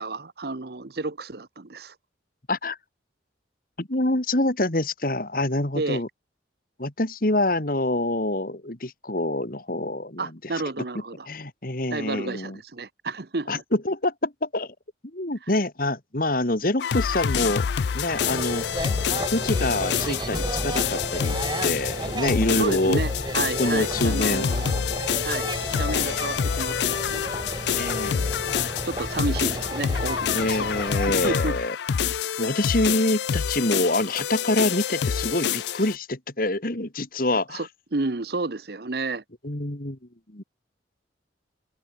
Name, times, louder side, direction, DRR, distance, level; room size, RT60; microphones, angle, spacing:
voice 1, 0.0-1.9 5.7-6.0 10.2-11.3 11.9-13.6 22.6-24.7 25.2-27.3 28.5-30.7 31.1-31.6 37.5-39.2, right 3 dB, 55° right, 0.9 m, -31 dB
voice 2, 3.8-6.1 6.8-10.3 11.3-12.6 13.5-14.7 15.1-17.7 17.9-18.7 19.3-21.4 21.6-23.0 23.6-24.5 27.7-28.7 30.3-31.8 32.0-32.1 32.4-37.7 39.4-40.0 40.3-40.4, left 1 dB, 50° left, 2.3 m, -26 dB
sound 1, 16.8-36.0, left 7 dB, 70° left, 0.4 m, -27 dB
sound 2, 18.1-31.4, right 1 dB, 25° right, 3.1 m, -33 dB
open air
head